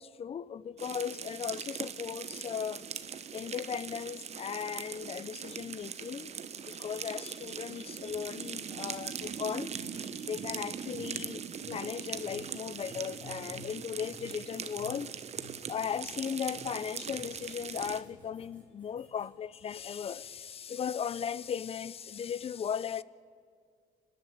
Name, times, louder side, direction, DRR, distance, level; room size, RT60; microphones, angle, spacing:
voice 1, 0.0-2.8 3.3-15.1 15.7-23.0, left 8 dB, 35° left, 0.6 m, -37 dB
sound 1, 0.8-18.0, right 7 dB, 40° right, 1.1 m, -41 dB
sound 2, 9.1-19.3, left 2 dB, 10° left, 5.8 m, -55 dB
30.0 x 11.5 x 8.9 m
cardioid pair, 110°, 17 cm